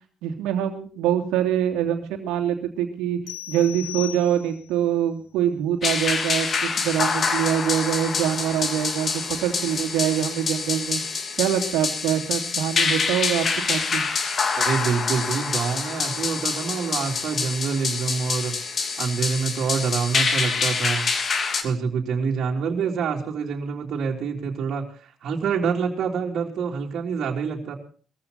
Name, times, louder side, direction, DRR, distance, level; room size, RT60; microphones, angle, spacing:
voice 1, 0.2-3.2 3.5-11.0 11.4-14.0, right 10 dB, 85° right, 5 dB, 3.1 m, -24 dB
sound 1, 3.3-4.8, left 13 dB, 85° left, 2.3 m, -37 dB
sound 2, 5.8-21.6, left 5 dB, 50° left, 3.1 m, -26 dB
voice 2, 14.6-18.5 19.0-21.1 21.6-27.7, right 6 dB, 65° right, -2 dB, 3.7 m, -26 dB
21.5 x 15.0 x 4.2 m, 0.40 s
supercardioid pair, 65°, 0 cm